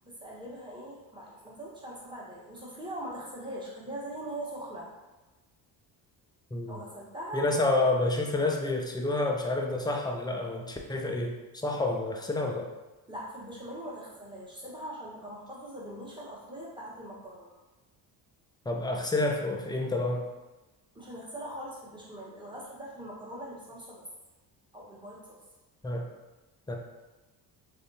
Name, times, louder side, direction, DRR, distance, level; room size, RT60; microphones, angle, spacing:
voice 1, 0.0-4.9 6.7-7.4 13.1-17.5 20.9-24.0 24.7-25.4, right 1 dB, 10° right, -6 dB, 1.3 m, -41 dB
voice 2, 6.5-6.8 7.3-12.7 18.7-20.3 25.8-26.1 26.7-26.8, left 2 dB, 10° left, 1 dB, 0.5 m, -29 dB
3.5 x 3.2 x 2.7 m, 1.1 s
supercardioid pair, 80°, 44 cm